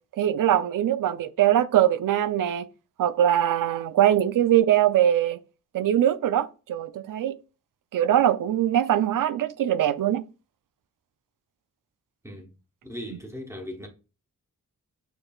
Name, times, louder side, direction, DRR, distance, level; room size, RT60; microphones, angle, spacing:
voice 1, 0.2-2.7 3.0-5.4 5.7-7.4 7.9-10.2, right 11 dB, 70° right, 0.5 m, -22 dB
voice 2, 12.8-13.9, equal, 10° right, 0.9 m, -38 dB
6.9 x 3.1 x 2.3 m
wide cardioid pair, 155°, 33 cm